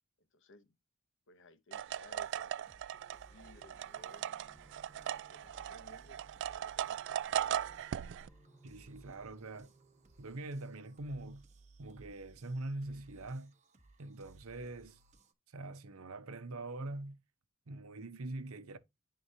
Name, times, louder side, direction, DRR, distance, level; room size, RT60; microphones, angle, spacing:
voice 1, 0.2-0.8 1.3-4.3 5.3-6.2 6.5-7.2, left 2 dB, 60° left, 0.9 m, -60 dB
sound 1, 1.7-8.3, right 10 dB, 55° right, 0.3 m, -38 dB
sound 2, 2.1-15.3, right 2 dB, 35° right, 1.0 m, -62 dB
sound 3, 2.9-10.9, right 1 dB, 5° left, 1.2 m, -65 dB
voice 2, 8.6-9.7 10.2-11.5 11.8-13.6 14.0-15.0 15.5-17.2 17.7-18.8, right 2 dB, 75° right, 0.8 m, -43 dB
11.0 x 3.8 x 2.7 m
head